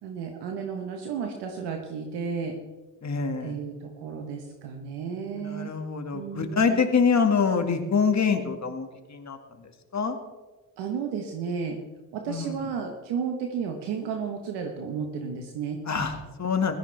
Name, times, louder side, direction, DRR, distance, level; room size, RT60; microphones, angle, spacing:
voice 1, 0.0-2.6 3.4-5.7 6.1-6.8 10.8-11.8 12.1-15.8, right 6 dB, 80° right, 3 dB, 1.4 m, -33 dB
voice 2, 3.0-3.6 5.3-10.2 12.3-12.5 15.9-16.8, left 5 dB, 40° left, 5 dB, 2.1 m, -26 dB
16.0 x 13.5 x 3.5 m, 1.2 s
supercardioid pair, 60°, 40 cm